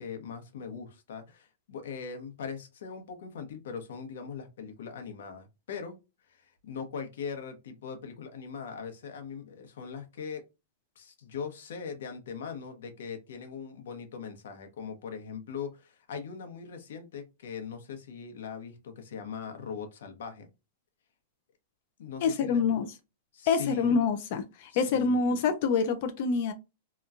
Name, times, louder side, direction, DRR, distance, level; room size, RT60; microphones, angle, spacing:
voice 1, 0.0-6.0 6.3-10.4 11.0-20.5 22.0-22.7 23.3-23.9 24.7-25.3, left 6 dB, 75° left, 0.9 m, -40 dB
voice 2, 22.2-22.9 23.5-26.5, left 5 dB, 50° left, 0.4 m, -26 dB
2.9 x 2.2 x 2.4 m
supercardioid pair, 150°, 0 cm